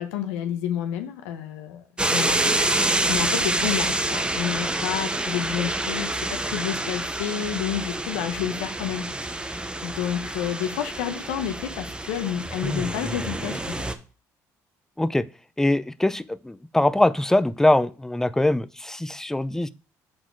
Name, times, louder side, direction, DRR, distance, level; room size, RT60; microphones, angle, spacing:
voice 1, 0.0-13.9, left 10 dB, 85° left, 7 dB, 0.8 m, -30 dB
sound 1, 2.0-13.9, right 2 dB, 10° right, 0.8 m, -27 dB
voice 2, 15.6-19.7, left 1 dB, 5° left, 14 dB, 0.5 m, -22 dB
6.4 x 4.1 x 4.6 m, 0.35 s
supercardioid pair, 70°, 8 cm